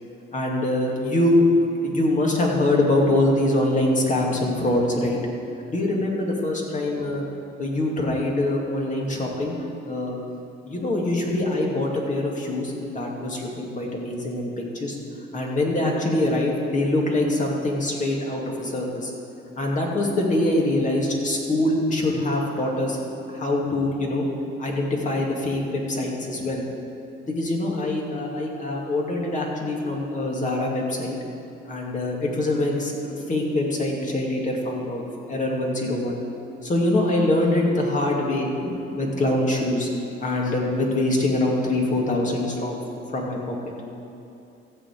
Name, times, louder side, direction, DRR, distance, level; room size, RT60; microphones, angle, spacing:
voice 1, 0.3-1.5 1.8-5.2 5.7-7.2 7.6-10.2 10.6-15.0 15.3-19.1 19.6-23.0 23.3-24.2 24.6-26.6 27.3-31.2 31.7-36.2 36.6-39.9 40.2-43.6, left 1 dB, 40° left, -2 dB, 2.5 m, -24 dB
15.0 x 5.0 x 8.5 m, 2.8 s
cardioid pair, 90°, 20 cm